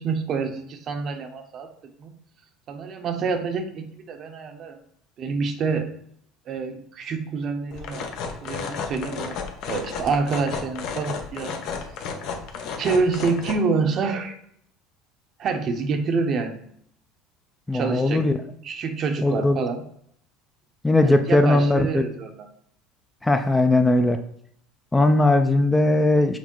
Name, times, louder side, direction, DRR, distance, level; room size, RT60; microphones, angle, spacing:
voice 1, 0.0-1.7 2.0-2.1 2.7-4.8 5.2-5.9 6.5-8.1 8.4-9.4 9.7-11.6 12.8-14.4 15.4-16.6 17.7-18.2 18.6-19.8 21.0-22.5, right 4 dB, 45° right, 6 dB, 0.7 m, -27 dB
sound 1, 7.7-13.5, left 5 dB, 65° left, 0.7 m, -33 dB
voice 2, 17.7-18.4 19.2-19.6 20.8-22.1 23.2-24.2 24.9-26.4, left 2 dB, 10° left, 7 dB, 0.4 m, -19 dB
5.9 x 2.0 x 4.4 m, 0.68 s
supercardioid pair, 100°, 0 cm